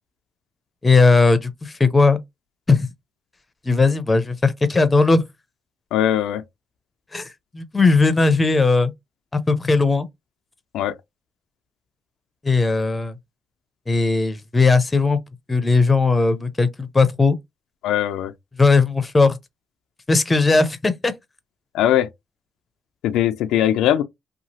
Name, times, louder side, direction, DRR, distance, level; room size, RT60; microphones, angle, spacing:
voice 1, 0.8-2.2 2.7-2.9 3.7-5.2 7.1-8.9 9.3-10.1 12.4-13.1 13.9-15.2 15.5-17.4 18.6-19.4 20.1-21.1, left 3 dB, 20° left, 0.6 m, -18 dB
voice 2, 5.9-6.4 10.7-11.0 17.8-18.3 21.7-22.1 23.0-24.0, left 11 dB, 90° left, 0.3 m, -20 dB
2.9 x 2.3 x 2.7 m
cardioid pair, 90°, 0 cm